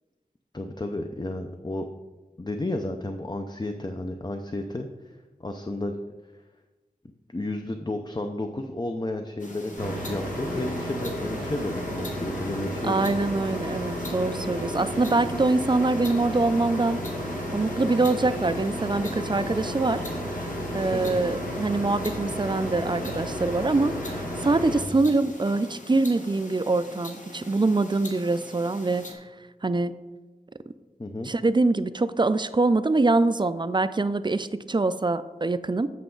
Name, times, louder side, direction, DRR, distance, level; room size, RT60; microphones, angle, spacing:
voice 1, 0.5-1.9 2.4-6.0 7.3-13.1 20.9-21.1 31.0-31.3, left 2 dB, 30° left, 5 dB, 0.5 m, -32 dB
sound 1, 9.4-29.1, left 2 dB, 55° left, 1.3 m, -43 dB
sound 2, 9.8-24.8, equal, 75° left, 1.4 m, -32 dB
voice 2, 12.8-17.0 17.5-20.0 20.7-29.1 29.6-29.9 31.3-35.9, right 3 dB, 30° right, 13 dB, 0.4 m, -24 dB
8.2 x 6.6 x 3.8 m, 1.2 s
wide cardioid pair, 55°, 15 cm